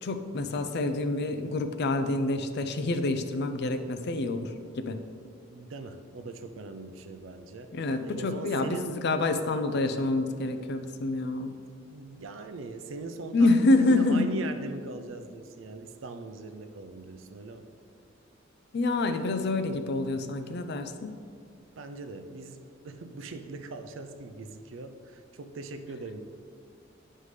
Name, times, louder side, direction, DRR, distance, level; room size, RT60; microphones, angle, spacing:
voice 1, 0.0-5.0 7.7-11.6 13.3-14.2 18.7-21.2, left 2 dB, 55° left, 8 dB, 0.5 m, -27 dB
voice 2, 5.5-7.8 8.0-9.0 11.8-17.7 21.8-26.2, right 3 dB, 80° right, 8 dB, 0.5 m, -41 dB
9.7 x 5.5 x 3.2 m, 2.3 s
head